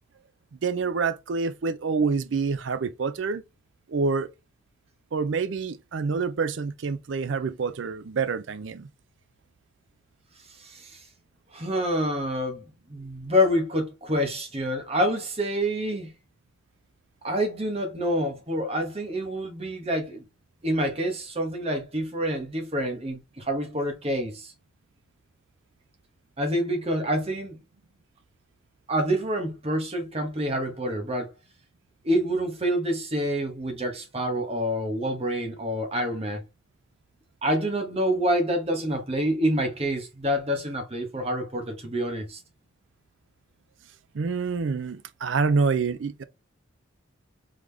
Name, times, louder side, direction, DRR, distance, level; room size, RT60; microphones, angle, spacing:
voice 1, 0.6-3.4 3.9-4.3 5.1-8.9 44.1-46.2, right 4 dB, 60° right, 0.4 m, -27 dB
voice 2, 10.6-11.0 11.5-16.1 17.2-20.2 20.6-24.5 26.4-27.6 28.9-31.3 32.0-36.4 37.4-42.4, equal, 30° right, 1.0 m, -27 dB
3.7 x 3.5 x 3.3 m
head